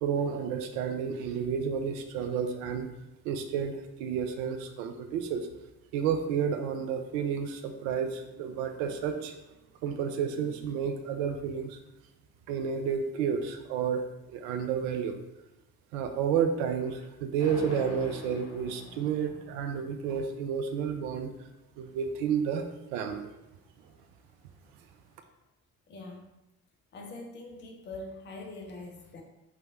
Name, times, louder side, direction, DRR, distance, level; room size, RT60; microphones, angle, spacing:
voice 1, 0.0-2.9 3.2-5.5 5.9-9.4 9.8-11.8 12.5-15.2 15.9-21.3 21.8-23.3, right 7 dB, 60° right, 6 dB, 0.5 m, -31 dB
sound 1, 17.4-20.3, left 2 dB, 55° left, 0.8 m, -44 dB
voice 2, 25.9-26.3 26.9-29.2, left 2 dB, 25° left, 2 dB, 0.5 m, -43 dB
3.1 x 3.1 x 2.4 m, 0.94 s
figure-of-eight pair, 40°, 46 cm